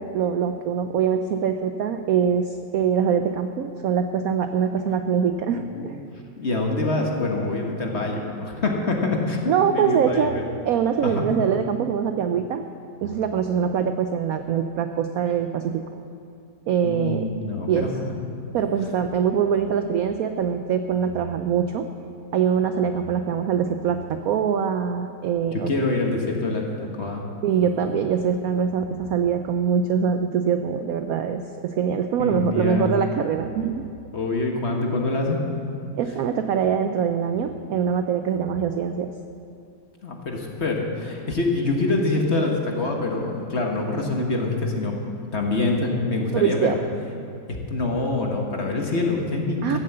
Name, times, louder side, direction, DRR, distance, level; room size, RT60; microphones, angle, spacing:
voice 1, 0.0-6.0 9.5-10.4 10.7-12.6 13.0-15.8 16.7-17.3 17.7-17.9 18.5-21.9 22.3-25.9 27.4-33.9 36.0-39.1 46.3-46.8 49.6-49.8, right 7 dB, 75° right, 7 dB, 0.8 m, -23 dB
voice 2, 5.5-5.9 6.4-9.4 9.7-10.4 11.0-11.3 16.8-18.2 25.5-27.2 32.2-33.0 34.1-35.4 40.0-44.9 45.3-46.8 47.5-49.8, left 2 dB, 40° left, 1 dB, 1.4 m, -25 dB
14.0 x 7.6 x 7.8 m, 2.5 s
omnidirectional pair, 2.1 m